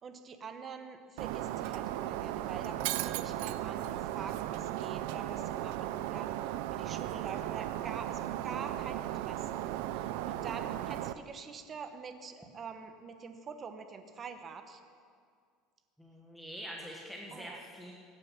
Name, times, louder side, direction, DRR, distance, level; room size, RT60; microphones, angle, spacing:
voice 1, 0.0-6.3 6.7-9.6 9.9-14.8 17.3-17.6, right 5 dB, 25° right, 7 dB, 0.9 m, -45 dB
Shatter, 1.2-11.1, right 13 dB, 75° right, 0.5 m, -36 dB
voice 2, 16.0-17.9, equal, ahead, -2 dB, 1.4 m, -45 dB
16.5 x 9.8 x 5.8 m, 2.1 s
cardioid pair, 155°, 0 cm